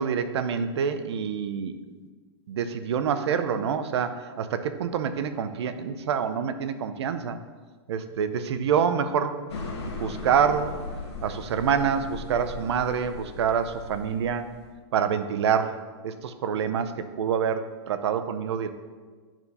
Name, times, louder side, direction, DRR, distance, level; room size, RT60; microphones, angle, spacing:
voice 1, 0.0-1.8 2.5-7.4 7.9-9.4 10.0-10.8 11.2-14.5 14.9-18.7, right 7 dB, 75° right, 10 dB, 0.7 m, -26 dB
sound 1, 9.5-14.7, left 3 dB, 75° left, 1.6 m, -38 dB
9.0 x 4.5 x 5.5 m, 1.5 s
supercardioid pair, 175°, 14 cm